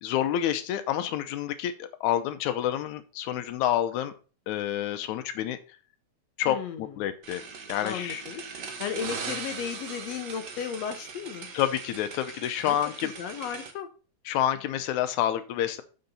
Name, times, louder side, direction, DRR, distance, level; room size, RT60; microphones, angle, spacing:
voice 1, 0.0-4.1 4.5-5.6 6.4-7.4 7.7-8.2 11.5-13.1 14.3-15.8, left 11 dB, 90° left, 10 dB, 2.1 m, -28 dB
voice 2, 6.5-7.0 7.8-8.4 8.8-11.5 12.6-12.8 13.0-13.9, left 8 dB, 75° left, 7 dB, 1.8 m, -35 dB
sound 1, 7.2-13.7, right 5 dB, 50° right, 1.4 m, -40 dB
7.0 x 6.7 x 4.2 m, 0.35 s
omnidirectional pair, 3.4 m